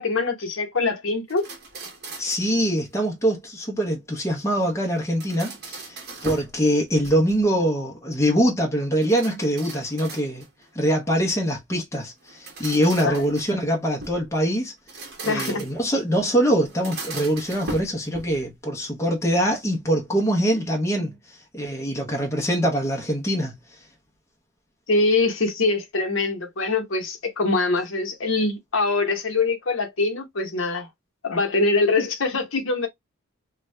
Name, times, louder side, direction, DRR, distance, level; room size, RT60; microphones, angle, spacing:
voice 1, 0.0-1.5 13.0-13.2 15.3-15.6 24.9-30.9 31.2-32.9, left 3 dB, 70° left, 0.9 m, -23 dB
sound 1, 1.3-2.5 4.9-6.6 6.9-7.5 9.0-10.6 12.2-14.3 14.8-15.9 16.7-18.5, right 3 dB, 50° right, 0.9 m, -38 dB
voice 2, 2.2-10.5 10.7-14.7 15.2-23.6, equal, 15° left, 0.7 m, -23 dB
2.6 x 2.3 x 3.1 m
head